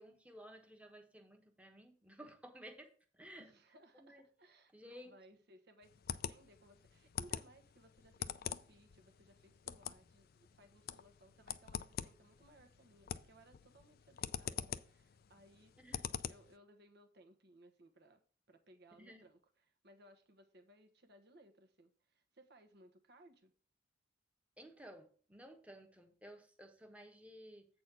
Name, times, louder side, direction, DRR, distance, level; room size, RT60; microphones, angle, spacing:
voice 1, 0.0-3.5 3.9-4.2 4.7-5.1 15.8-16.1 19.0-19.2 24.6-27.7, equal, 5° right, 1.2 m, -55 dB
voice 2, 3.4-15.7 16.2-18.2 18.5-23.5, right 1 dB, 60° right, 1.2 m, -64 dB
sound 1, 5.8-16.5, left 9 dB, 55° left, 0.4 m, -45 dB
8.3 x 4.2 x 6.1 m
head